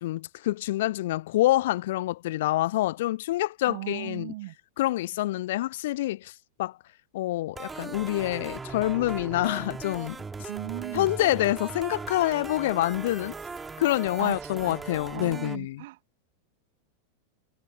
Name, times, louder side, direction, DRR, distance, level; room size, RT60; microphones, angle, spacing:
voice 1, 0.0-4.3 4.8-6.3 6.6-6.8 7.1-10.5 10.9-13.3 13.8-15.8, left 16 dB, 55° left, 0.5 m, -27 dB
voice 2, 3.7-4.6 10.5-11.1 14.2-14.8 15.1-16.0, right 19 dB, 50° right, 2.4 m, -37 dB
sound 1, 7.6-15.6, right 4 dB, 15° right, 3.7 m, -38 dB
figure-of-eight pair, 90°, 0 cm